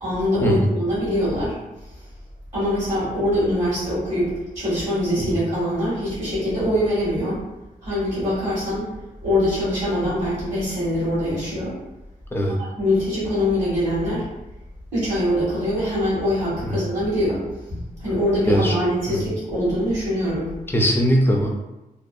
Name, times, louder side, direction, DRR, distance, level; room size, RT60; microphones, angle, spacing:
voice 1, 0.0-1.6 2.5-7.4 7.8-8.9 9.2-11.7 12.6-14.2 14.9-20.5, left 1 dB, 50° right, -10 dB, 1.3 m, -23 dB
voice 2, 20.7-21.5, equal, 15° left, 1 dB, 0.3 m, -20 dB
2.7 x 2.3 x 2.2 m, 0.97 s
wide cardioid pair, 160°, 16 cm